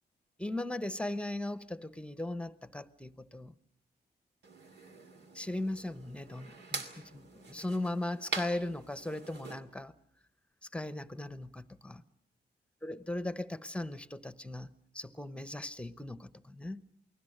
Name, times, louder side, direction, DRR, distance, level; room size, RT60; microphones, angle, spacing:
voice 1, 0.4-3.5 5.3-9.9 10.7-12.0 12.8-14.7 14.9-16.8, left 1 dB, 5° left, 0.9 m, -38 dB
sound 1, 4.4-9.6, right 3 dB, 75° right, 2.7 m, -44 dB
28.5 x 19.5 x 6.6 m
cardioid pair, 100°, 18 cm